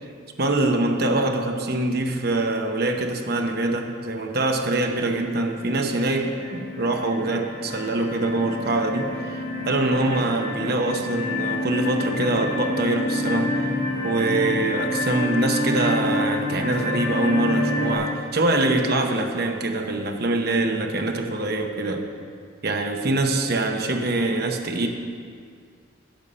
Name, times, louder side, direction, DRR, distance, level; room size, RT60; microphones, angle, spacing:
voice 1, 0.4-13.7 14.0-22.1 22.6-24.9, right 2 dB, 50° right, 4 dB, 0.8 m, -24 dB
sound 1, 4.9-5.2 5.7-18.0, left 1 dB, 35° left, 2.1 m, -28 dB
10.5 x 6.5 x 5.6 m, 2.2 s
head